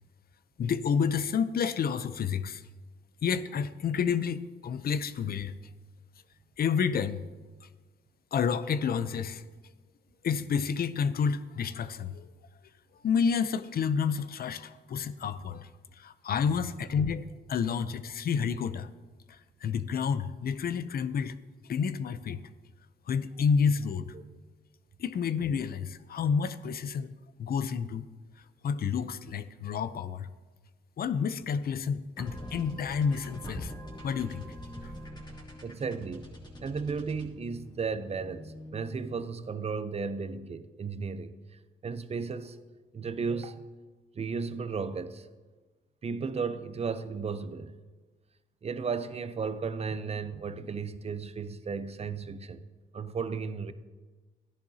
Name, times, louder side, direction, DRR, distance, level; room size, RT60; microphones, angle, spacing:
voice 1, 0.6-2.6 3.2-5.5 6.6-7.2 8.3-9.4 10.2-12.2 13.0-15.7 16.0-18.9 19.3-21.3 21.7-22.4 23.1-24.1 25.0-27.1 27.4-28.1 28.6-30.3 31.0-33.7 34.0-34.4 34.8-34.9, left 6 dB, 50° left, 0.6 m, -29 dB
sound 1, 32.2-39.5, equal, 20° left, 2.5 m, -44 dB
voice 2, 35.6-36.3 36.6-42.6 42.9-43.7 44.1-45.3 46.0-47.7 48.6-52.6 52.9-53.7, right 5 dB, 30° right, 0.7 m, -34 dB
14.5 x 10.5 x 2.8 m
cardioid pair, 90°, 20 cm